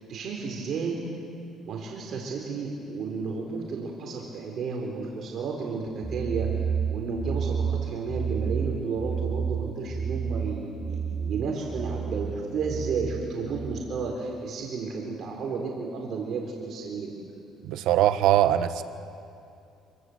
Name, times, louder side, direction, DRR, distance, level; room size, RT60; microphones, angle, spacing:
voice 1, 0.1-1.0 1.6-6.5 6.9-17.1, right 4 dB, 55° right, 0 dB, 4.0 m, -32 dB
sound 1, 6.0-13.8, right 7 dB, 10° right, 2.0 m, -31 dB
voice 2, 17.6-18.8, right 12 dB, 80° right, 10 dB, 1.4 m, -21 dB
27.0 x 23.0 x 8.0 m, 2.5 s
cardioid pair, 105°, 0 cm